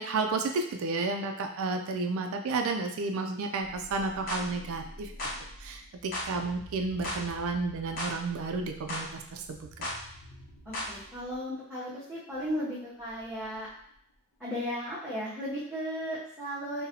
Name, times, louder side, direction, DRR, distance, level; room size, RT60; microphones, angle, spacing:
voice 1, 0.0-5.1 5.6-9.9, right 3 dB, 70° right, 5 dB, 0.4 m, -32 dB
sound 1, 3.6-11.4 12.3-14.1, equal, 75° left, 0.8 m, -50 dB
sound 2, 4.3-4.5 5.2-5.4 6.1-6.3 7.0-7.2 8.0-8.2 8.9-9.1 9.8-10.0 10.7-10.9, left 1 dB, 40° left, 0.8 m, -34 dB
voice 2, 10.7-13.7 14.4-16.8, equal, ahead, -13 dB, 0.8 m, -35 dB
3.9 x 2.1 x 2.8 m, 0.69 s
head